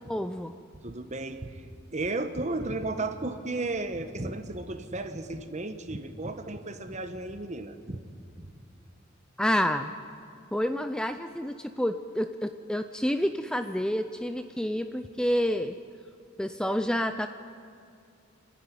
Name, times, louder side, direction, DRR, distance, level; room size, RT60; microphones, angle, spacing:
voice 1, 0.1-0.5 9.4-9.9 10.5-15.8 16.4-17.3, equal, 5° left, 9 dB, 0.4 m, -29 dB
voice 2, 0.8-1.6 1.9-8.0 8.4-8.5, right 2 dB, 35° right, 8 dB, 1.2 m, -34 dB
28.0 x 10.5 x 9.6 m, 2.4 s
head